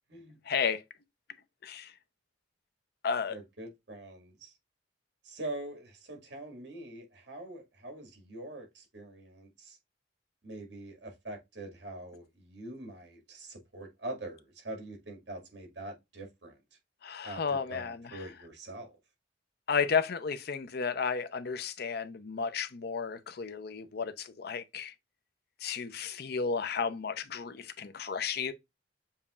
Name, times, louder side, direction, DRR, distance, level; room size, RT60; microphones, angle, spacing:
voice 1, 0.5-0.8 1.6-1.9 3.0-3.4 17.0-18.3 19.7-24.9 25.6-28.5, left 5 dB, 60° left, 0.6 m, -33 dB
voice 2, 3.3-4.5 5.2-9.8 10.4-16.6 17.2-18.9, right 1 dB, 70° right, 1.8 m, -44 dB
7.1 x 2.8 x 2.4 m
head